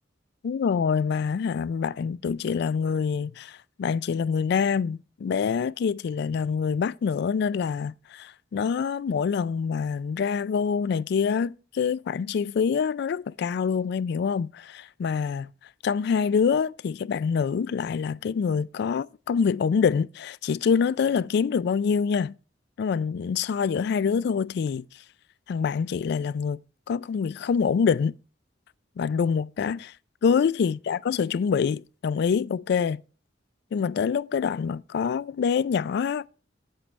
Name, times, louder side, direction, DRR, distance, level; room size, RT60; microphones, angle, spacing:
voice 1, 0.4-15.5 15.8-22.3 22.8-24.8 25.5-26.6 26.9-28.1 29.0-29.9 30.2-33.0 33.7-36.2, left 6 dB, 60° left, 0.3 m, -26 dB
8.5 x 7.3 x 3.2 m
head